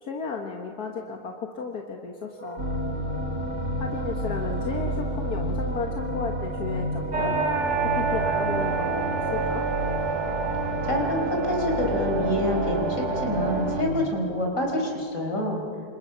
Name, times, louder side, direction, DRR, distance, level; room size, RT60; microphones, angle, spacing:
voice 1, 0.0-2.6 3.8-7.4 7.8-9.7, left 4 dB, 80° left, 2 dB, 2.1 m, -34 dB
Wind instrument woodwind instrument, 2.3-12.4, right 4 dB, 20° right, 1.4 m, -40 dB
sound 1, 2.6-14.1, equal, 60° right, 5.2 m, -31 dB
sound 2, 7.1-13.8, right 4 dB, 80° right, 2.4 m, -28 dB
voice 2, 10.8-15.6, left 1 dB, 55° left, 0 dB, 5.2 m, -27 dB
29.0 x 26.0 x 5.9 m, 2.3 s
omnidirectional pair, 1.6 m